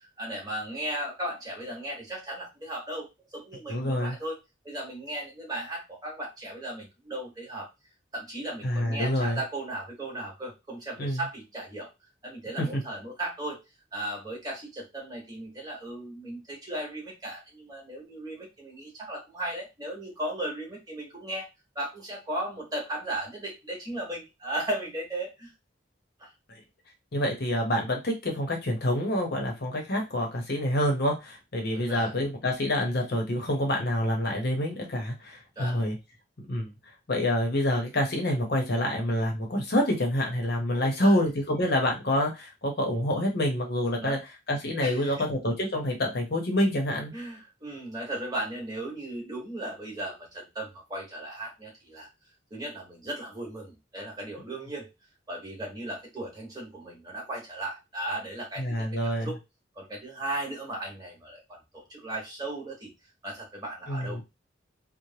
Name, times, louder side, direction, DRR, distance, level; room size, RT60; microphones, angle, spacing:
voice 1, 0.2-4.4 4.6-7.7 8.1-11.9 12.2-13.6 13.9-21.5 21.7-25.5 26.2-26.3 31.7-32.1 35.6-35.9 40.7-41.2 43.9-44.2 44.8-45.3 47.1-52.1 52.5-54.9 55.3-59.4 59.7-62.9 63.2-64.2, right 1 dB, 20° right, -2 dB, 1.3 m, -36 dB
voice 2, 3.7-4.2 8.6-9.4 11.0-11.2 12.6-12.8 27.1-36.0 36.5-36.7 37.1-44.2 44.5-47.1 58.6-59.3 63.9-64.2, left 1 dB, 60° left, 2 dB, 0.9 m, -27 dB
3.2 x 2.1 x 2.8 m, 0.23 s
head